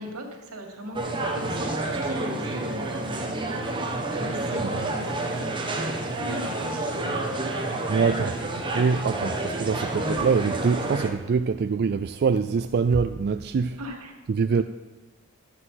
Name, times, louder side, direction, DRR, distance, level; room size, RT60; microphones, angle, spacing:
voice 1, 0.0-5.5 6.2-7.6 8.0-8.3 13.7-14.1, right 1 dB, 85° right, 2.2 m, -38 dB
sound 1, 0.9-11.1, right 2 dB, 20° right, 1.2 m, -29 dB
voice 2, 7.9-8.3 8.7-13.8 14.3-14.6, right 5 dB, 45° right, 0.3 m, -24 dB
12.0 x 7.9 x 5.8 m
head